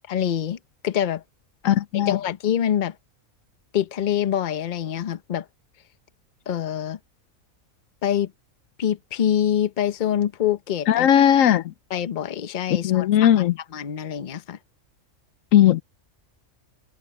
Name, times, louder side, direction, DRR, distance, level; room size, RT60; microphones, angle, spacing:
voice 1, 0.1-0.6 0.8-1.2 1.9-2.9 3.7-5.4 6.5-7.0 8.0-8.3 8.8-11.1 11.9-13.4 13.7-14.6, left 10 dB, 40° left, 0.8 m, -25 dB
voice 2, 1.6-2.2 10.9-11.6 12.8-13.5 15.5-15.8, left 11 dB, 75° left, 1.0 m, -17 dB
omnidirectional pair, 1.4 m